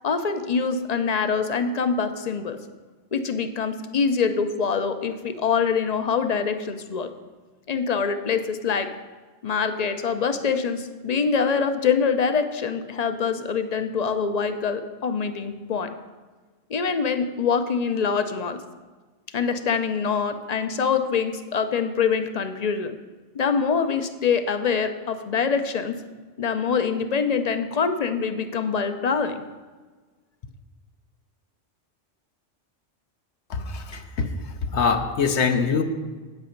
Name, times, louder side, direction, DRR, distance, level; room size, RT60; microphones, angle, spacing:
voice 1, 0.0-2.6 3.1-7.1 7.7-8.9 9.4-15.9 16.7-18.6 19.3-23.0 23.3-26.0 26.4-29.5, left 6 dB, 45° left, 9 dB, 0.6 m, -24 dB
voice 2, 33.5-34.3 34.7-35.8, left 5 dB, 70° left, 6 dB, 1.1 m, -23 dB
8.7 x 8.3 x 5.1 m, 1.4 s
omnidirectional pair, 1.2 m